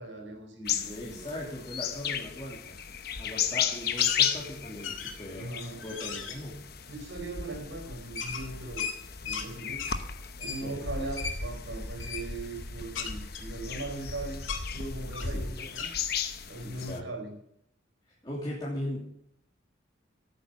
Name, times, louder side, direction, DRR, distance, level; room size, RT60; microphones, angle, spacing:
voice 1, 0.0-1.4 5.3-5.9 6.8-8.9 9.2-9.9 10.4-14.4 14.7-15.9 16.5-17.3, right 2 dB, 75° right, 3 dB, 4.6 m, -39 dB
sound 1, 0.6-17.0, left 7 dB, 50° left, 1.0 m, -35 dB
voice 2, 0.9-2.8 3.2-5.5 5.8-6.6 10.6-10.8 15.3-15.4 16.6-17.1 18.2-19.1, left 1 dB, 20° left, -6 dB, 3.0 m, -39 dB
sound 2, 4.0-4.4 4.8-5.3 5.8-6.4 8.2-9.5 9.8-10.0 10.4-10.6 11.2-11.4 12.0-12.2 12.9-14.1 14.4-14.6 15.1-15.4 15.7-15.9, left 6 dB, 85° left, 1.9 m, -36 dB
13.5 x 9.3 x 6.5 m, 0.72 s
head